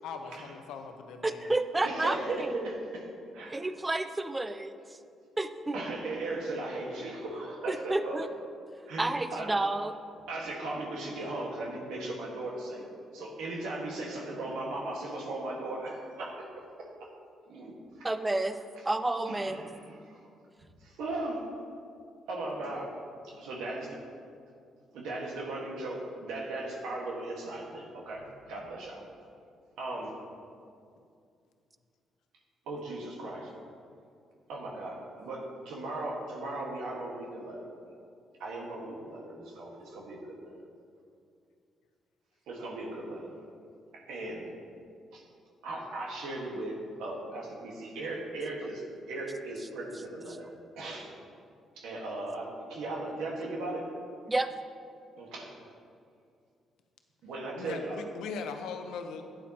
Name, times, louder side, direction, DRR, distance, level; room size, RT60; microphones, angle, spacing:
voice 1, 0.0-1.5 57.5-59.2, left 5 dB, 85° left, 6 dB, 0.7 m, -40 dB
voice 2, 1.2-2.7 3.5-5.0 5.4-5.8 7.7-8.3 9.0-10.0 18.0-18.6 18.8-19.6 54.3-54.5, right 2 dB, 15° right, 10 dB, 0.5 m, -30 dB
voice 3, 1.8-3.1 3.3-3.7 5.7-8.2 8.9-9.5 10.3-12.9 13.1-17.1 17.5-17.7 18.0-18.1 19.3-20.2 20.8-21.4 22.3-22.9 23.2-24.0 24.9-29.0 29.8-30.2 32.7-33.5 34.5-37.7 38.4-40.5 42.5-43.3 43.9-44.5 45.1-45.3 45.6-50.5 50.8-51.2 51.8-53.9 55.2-55.5 57.2-58.0, right 2 dB, 90° right, -2 dB, 1.6 m, -37 dB
11.5 x 9.0 x 2.9 m, 2.4 s
cardioid pair, 90°, 0 cm